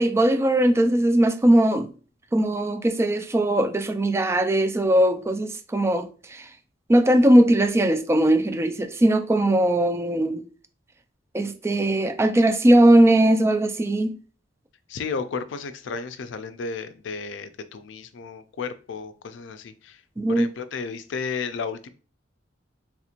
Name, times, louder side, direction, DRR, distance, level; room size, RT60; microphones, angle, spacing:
voice 1, 0.0-1.9 2.3-6.5 6.9-10.4 11.3-14.1 20.2-20.5, right 1 dB, 15° right, 0.3 m, -19 dB
voice 2, 14.9-20.0 20.3-21.9, left 5 dB, 85° left, 0.4 m, -33 dB
3.5 x 2.9 x 2.4 m
head